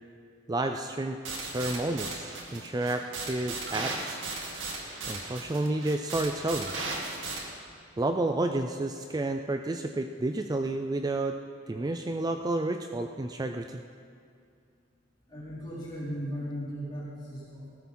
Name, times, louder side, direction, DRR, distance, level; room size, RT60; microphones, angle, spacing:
voice 1, 0.5-4.2 5.1-6.7 8.0-11.4 11.7-13.8, right 2 dB, 20° right, 6 dB, 0.4 m, -30 dB
sound 1, 1.2-7.4, right 3 dB, 85° right, 2.2 m, -36 dB
voice 2, 15.3-17.7, equal, 25° left, -10 dB, 4.0 m, -37 dB
17.5 x 13.0 x 4.4 m, 2.3 s
head